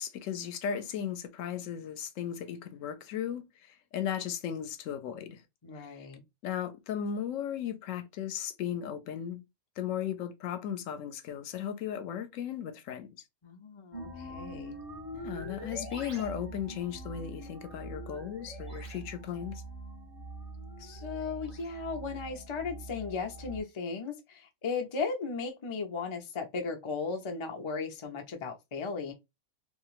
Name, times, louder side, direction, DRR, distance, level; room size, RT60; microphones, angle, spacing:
voice 1, 0.0-5.4 5.7-6.1 6.4-9.4 9.8-13.1 15.1-19.6, left 9 dB, 70° left, 0.9 m, -36 dB
voice 2, 5.6-6.2 13.4-14.8 20.8-29.1, left 4 dB, 50° left, 0.3 m, -36 dB
sound 1, 13.9-23.6, right 2 dB, 30° right, 1.0 m, -43 dB
2.9 x 2.5 x 2.3 m
omnidirectional pair, 1.5 m